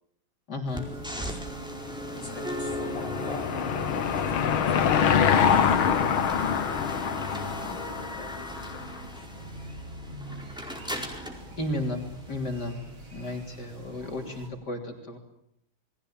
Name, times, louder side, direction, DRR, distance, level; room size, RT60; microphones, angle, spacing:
voice 1, 0.5-0.9 11.6-12.8 13.1-15.2, left 1 dB, 55° left, 2 dB, 3.8 m, -33 dB
sound 1, 0.7-12.7, equal, ahead, 4.5 m, -37 dB
sound 2, 0.7-14.5, right 1 dB, 80° right, 5.0 m, -46 dB
voice 2, 1.2-1.5 2.2-4.9 5.9-9.5, left 2 dB, 15° left, 1 dB, 4.4 m, -45 dB
Car passing by / Engine, 2.0-8.8, left 7 dB, 85° left, 2.2 m, -25 dB
29.0 x 21.0 x 8.9 m, 0.74 s
omnidirectional pair, 2.2 m